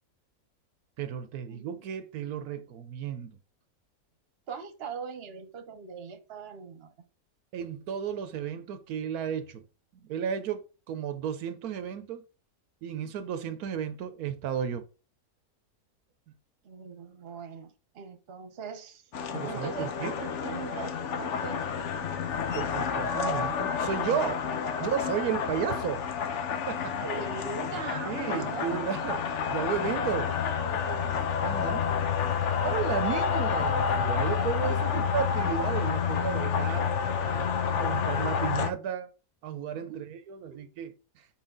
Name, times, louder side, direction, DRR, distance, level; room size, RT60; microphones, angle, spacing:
voice 1, 1.0-3.4 7.5-9.6 10.0-12.2 12.8-14.9 19.3-20.1 22.5-24.4 24.8-26.1 26.7-27.0 28.0-29.2 29.5-30.3 31.4-32.0 32.6-36.9 37.2-39.1 39.4-41.3, right 8 dB, 80° right, 1.2 m, -33 dB
voice 2, 4.5-6.9 16.6-19.1 19.4-19.9 20.2-21.6 27.0-29.4 29.9-31.2 34.7-35.3 39.9-40.0 40.5-40.7, right 5 dB, 45° right, 1.1 m, -41 dB
sound 1, 19.1-38.7, left 6 dB, 60° left, 1.0 m, -29 dB
5.7 x 5.1 x 3.8 m
omnidirectional pair, 1.6 m